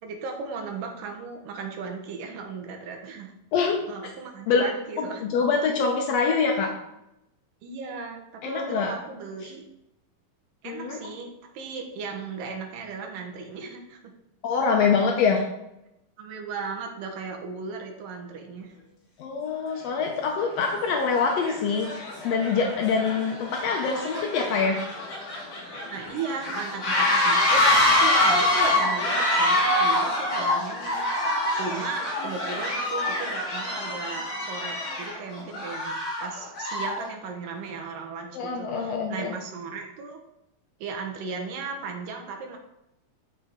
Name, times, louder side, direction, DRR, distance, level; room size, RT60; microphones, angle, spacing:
voice 1, 0.0-3.3 3.9-5.3 7.6-9.6 10.6-14.1 16.2-18.7 25.9-31.1 31.5-40.2 40.8-42.6, right 5 dB, 75° right, 3 dB, 2.8 m, -36 dB
voice 2, 3.5-3.8 4.5-4.6 5.0-6.7 8.4-8.9 9.4-9.5 10.6-11.0 14.4-15.4 19.2-24.8 38.3-39.3, left 5 dB, 80° left, 2 dB, 1.4 m, -25 dB
sound 1, 19.7-19.8 20.5-20.7 21.1-37.1, left 1 dB, 45° left, 2.5 m, -25 dB
9.4 x 6.2 x 3.6 m, 0.86 s
omnidirectional pair, 3.9 m